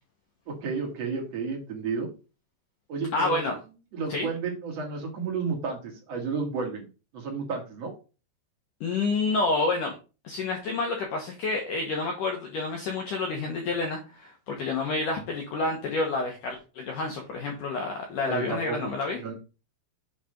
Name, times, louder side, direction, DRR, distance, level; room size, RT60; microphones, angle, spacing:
voice 1, 0.5-2.1 2.9-3.4 3.9-6.9 7.1-7.9 18.2-18.9 19.2-19.3, right 5 dB, 45° right, 1 dB, 2.4 m, -32 dB
voice 2, 3.1-3.6 4.1-4.3 8.8-9.9 10.2-19.2, left 3 dB, 65° left, 2 dB, 2.1 m, -29 dB
8.1 x 4.2 x 5.2 m, 0.32 s
omnidirectional pair, 5.2 m